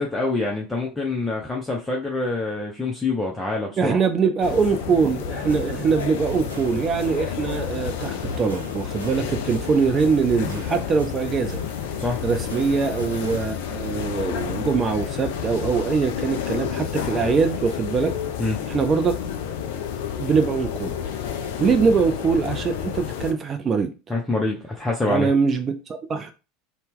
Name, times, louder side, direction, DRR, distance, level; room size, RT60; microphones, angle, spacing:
voice 1, 0.0-4.0 12.0-12.2 18.4-18.6 24.1-25.3, left 2 dB, 10° left, 0.6 m, -26 dB
voice 2, 3.8-11.6 12.2-18.2 18.7-19.2 20.2-20.9 21.6-23.9 25.1-26.3, right 5 dB, 30° right, 0.4 m, -23 dB
sound 1, 4.4-23.3, left 8 dB, 60° left, 0.4 m, -30 dB
sound 2, 5.5-13.5, right 2 dB, 80° right, 0.7 m, -41 dB
2.7 x 2.1 x 3.5 m
figure-of-eight pair, 75°, 0 cm